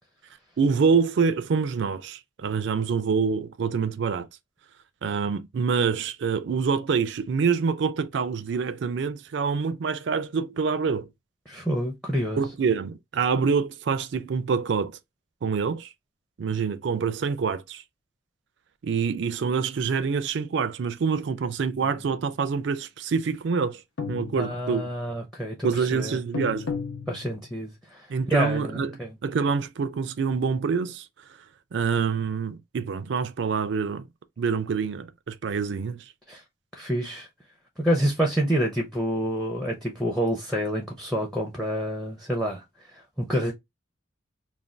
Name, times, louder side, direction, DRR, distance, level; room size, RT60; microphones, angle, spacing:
voice 1, 0.6-4.3 5.0-11.1 12.4-14.9 15.4-15.9 16.4-17.8 18.8-23.8 24.1-24.9 25.6-26.7 28.1-31.1 31.7-34.1 34.4-36.0, right 5 dB, 60° right, 0.4 m, -26 dB
voice 2, 11.5-12.4 24.4-26.2 27.1-29.1 36.3-36.4 36.7-37.3 37.8-42.6 42.9-43.5, equal, ahead, 0.5 m, -28 dB
sound 1, 21.8-22.4 24.0-25.0 26.3-27.6, left 5 dB, 70° left, 0.7 m, -35 dB
2.5 x 2.2 x 3.2 m
head